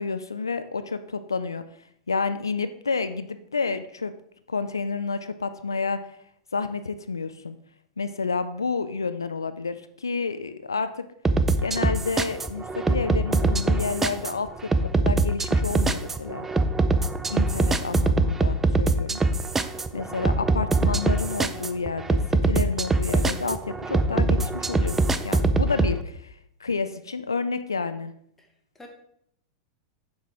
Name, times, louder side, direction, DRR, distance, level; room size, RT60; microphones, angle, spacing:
voice 1, 0.0-1.6 2.1-4.1 4.5-6.0 6.5-7.6 8.0-11.1 11.6-16.5 17.3-19.2 19.9-28.1, left 4 dB, 85° left, 12 dB, 0.3 m, -30 dB
sound 1, 11.2-25.9, right 3 dB, 15° right, 0.4 m, -23 dB
voice 2, 28.4-28.9, left 1 dB, 10° left, 2 dB, 1.4 m, -48 dB
7.7 x 5.6 x 3.6 m, 0.69 s
figure-of-eight pair, 90°, 2 cm